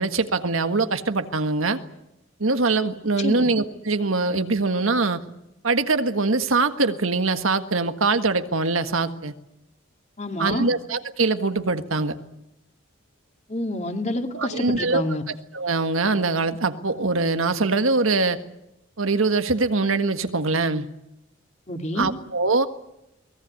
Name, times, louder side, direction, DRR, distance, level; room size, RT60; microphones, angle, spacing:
voice 1, 0.0-1.8 2.4-5.2 5.6-9.3 10.4-12.2 14.3-15.0 15.5-18.4 19.0-20.9 22.0-22.7, right 3 dB, 85° right, 9 dB, 1.6 m, -23 dB
voice 2, 3.2-3.5 10.2-10.7 13.5-15.2 21.7-22.1, left 1 dB, 35° left, 5 dB, 2.4 m, -28 dB
23.0 x 19.0 x 9.7 m, 0.90 s
head